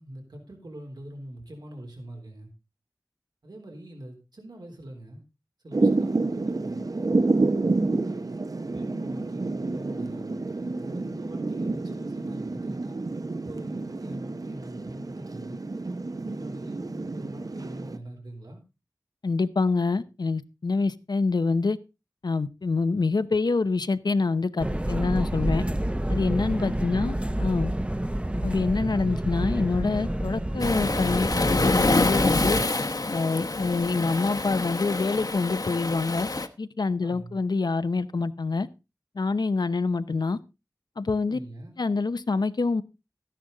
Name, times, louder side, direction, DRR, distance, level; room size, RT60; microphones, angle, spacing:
voice 1, 0.0-2.5 3.4-5.2 5.6-6.9 7.7-10.3 10.8-13.0 13.4-15.6 16.2-18.6 26.6-27.1 37.0-37.4 41.3-41.8, right 1 dB, 85° right, 2 dB, 3.5 m, -43 dB
Thunder / Rain, 5.7-18.0, right 3 dB, 60° right, 0.8 m, -29 dB
voice 2, 19.2-21.8 22.2-25.6 26.1-27.2 27.4-27.7 28.4-32.6 33.1-36.3 36.6-38.7 39.2-40.4 41.0-41.4 41.8-42.8, left 3 dB, 90° left, 13 dB, 0.7 m, -26 dB
sound 1, 24.6-32.7, right 1 dB, 15° right, 0.7 m, -28 dB
Waves surf, 30.6-36.5, left 2 dB, 60° left, 1.1 m, -26 dB
13.5 x 10.0 x 3.9 m, 0.28 s
wide cardioid pair, 50°, 7 cm